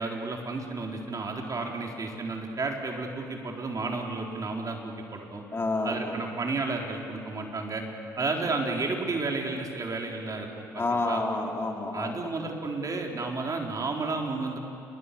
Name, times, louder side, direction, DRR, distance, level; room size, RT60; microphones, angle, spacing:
voice 1, 0.0-5.4 5.8-7.8 8.2-11.2 11.9-14.6, right 3 dB, 40° right, 1 dB, 4.4 m, -32 dB
voice 2, 5.5-6.2 8.2-8.3 10.8-12.3, left 2 dB, 25° left, 1 dB, 3.8 m, -29 dB
29.5 x 22.0 x 7.0 m, 2.7 s
hypercardioid pair, 50°, 9 cm